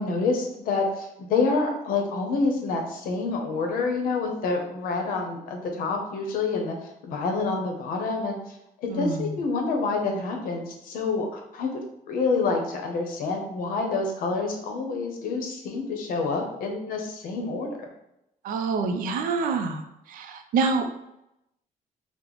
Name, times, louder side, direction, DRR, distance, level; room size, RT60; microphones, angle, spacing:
voice 1, 0.0-6.8 7.1-8.5 8.8-11.7 12.1-17.7, left 3 dB, 80° left, 2 dB, 0.7 m, -27 dB
voice 2, 8.9-9.4 18.4-19.8 20.1-20.9, right 4 dB, 70° right, 7 dB, 0.4 m, -26 dB
3.9 x 2.0 x 3.0 m, 0.85 s
cardioid pair, 180°, 14 cm